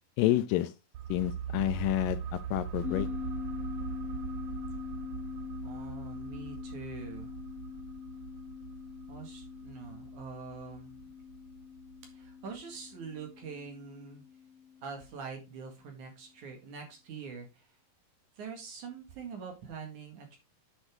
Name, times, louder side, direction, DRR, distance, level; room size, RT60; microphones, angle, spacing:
voice 1, 0.2-0.7 1.1-3.1, left 15 dB, 80° left, 2.3 m, -29 dB
sound 1, 0.9-12.3 12.6-12.7, right 8 dB, 85° right, 1.4 m, -42 dB
sound 2, 2.8-15.6, left 7 dB, 35° left, 1.2 m, -43 dB
voice 2, 5.6-7.3 9.1-11.0 12.1-14.2 14.8-17.7 18.4-20.4, right 5 dB, 60° right, 3.0 m, -44 dB
9.8 x 6.4 x 3.6 m
omnidirectional pair, 4.1 m